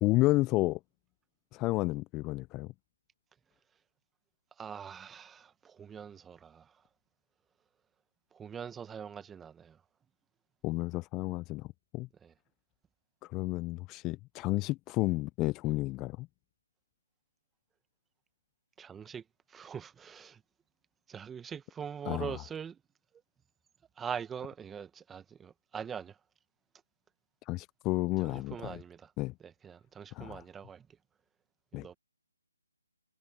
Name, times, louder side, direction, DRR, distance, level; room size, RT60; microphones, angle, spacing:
voice 1, 0.0-0.8 1.5-2.7 10.6-11.7 11.9-12.1 13.3-16.3 22.1-22.3 27.5-28.8 29.2-29.3 30.1-30.4 31.7-31.9, left 20 dB, 15° left, 0.4 m, -31 dB
voice 2, 4.6-6.7 8.3-9.8 12.2-12.3 18.8-19.2 19.5-20.4 21.1-22.8 24.0-26.2 28.2-29.1 29.4-30.9 31.7-31.9, right 7 dB, 10° right, 1.3 m, -43 dB
figure-of-eight pair, 150°, 0 cm